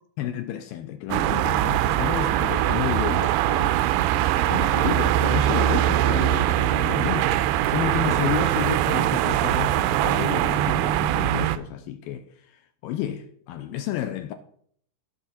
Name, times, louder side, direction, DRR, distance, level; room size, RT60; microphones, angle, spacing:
voice 1, 0.2-3.8 4.3-7.4 7.7-14.3, left 11 dB, 80° left, 2.2 m, -31 dB
sound 1, 1.1-11.6, right 13 dB, 85° right, 2.6 m, -22 dB
17.0 x 6.2 x 4.2 m
omnidirectional pair, 4.7 m